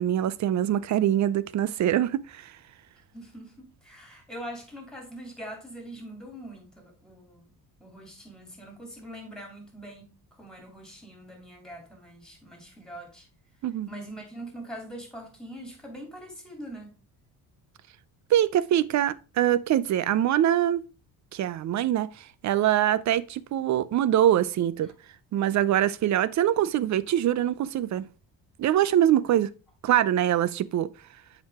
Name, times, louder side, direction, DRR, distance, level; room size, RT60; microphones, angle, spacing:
voice 1, 0.0-2.6 13.6-13.9 18.3-20.8 21.3-24.9 25.3-28.1 28.6-29.5 29.8-30.9, right 11 dB, 45° right, 0.5 m, -24 dB
voice 2, 3.1-13.3 13.9-16.9 24.8-24.9, right 1 dB, ahead, 2.9 m, -43 dB
7.4 x 4.8 x 3.5 m
cardioid pair, 100°, 41 cm